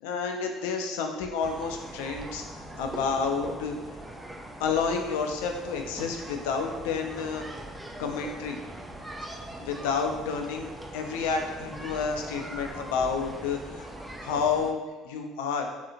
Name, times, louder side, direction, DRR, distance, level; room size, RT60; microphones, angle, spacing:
voice 1, 0.0-2.4 2.8-4.0 4.6-7.4 8.0-8.6 9.6-13.9 14.2-14.8 15.0-15.7, left 5 dB, 75° left, 3 dB, 0.3 m, -30 dB
sound 1, 1.4-14.7, right 1 dB, 10° right, 0.3 m, -41 dB
2.8 x 2.4 x 2.5 m, 1.3 s
hypercardioid pair, 60°, 0 cm